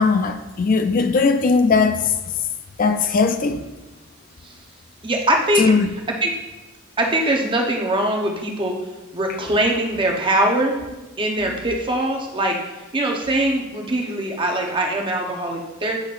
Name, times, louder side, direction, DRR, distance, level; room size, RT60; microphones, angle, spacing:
voice 1, 0.0-2.1 2.8-3.6 5.5-5.9 9.3-9.4 11.4-11.6, left 4 dB, 40° left, 0.3 m, -19 dB
voice 2, 5.0-5.7 6.2-6.3 7.0-8.8 9.1-10.8 11.2-12.6 12.9-16.0, right 1 dB, 25° right, 0.8 m, -22 dB
8.5 x 5.9 x 2.5 m
head